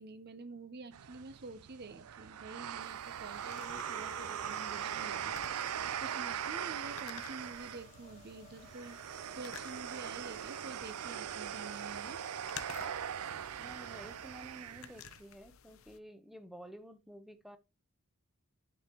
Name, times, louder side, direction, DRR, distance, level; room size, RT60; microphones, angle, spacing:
voice 1, 0.0-9.0 9.3-12.2, right 3 dB, 45° right, 0.7 m, -48 dB
sound 1, 0.9-15.2, right 9 dB, 85° right, 0.4 m, -41 dB
sound 2, 2.8-16.0, left 8 dB, 65° left, 0.7 m, -54 dB
sound 3, 3.2-13.5, left 4 dB, 30° left, 0.8 m, -58 dB
voice 2, 13.6-17.6, right 1 dB, ahead, 0.7 m, -51 dB
9.5 x 5.1 x 2.9 m
head